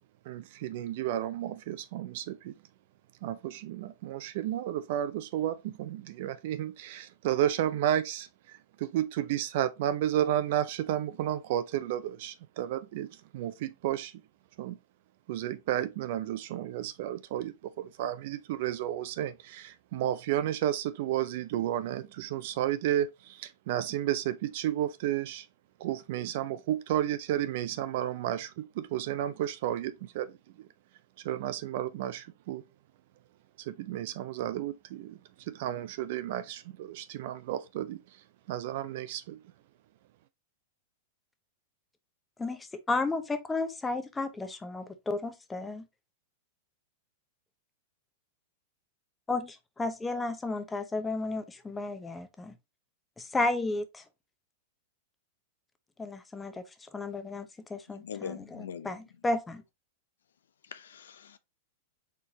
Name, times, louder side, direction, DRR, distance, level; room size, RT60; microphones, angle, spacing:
voice 1, 0.2-2.5 3.2-14.2 14.6-14.8 15.3-25.5 25.8-30.7 31.2-32.6 33.6-38.2 38.5-39.4, right 12 dB, 60° right, 0.6 m, -32 dB
voice 2, 42.4-45.9 49.3-49.5 49.8-52.5 53.2-54.0 56.0-56.6 56.9-59.6, left 2 dB, 10° left, 0.7 m, -33 dB
voice 3, 57.9-58.9 60.7-61.4, left 7 dB, 85° left, 0.5 m, -42 dB
4.5 x 3.7 x 2.8 m
hypercardioid pair, 120°, 0 cm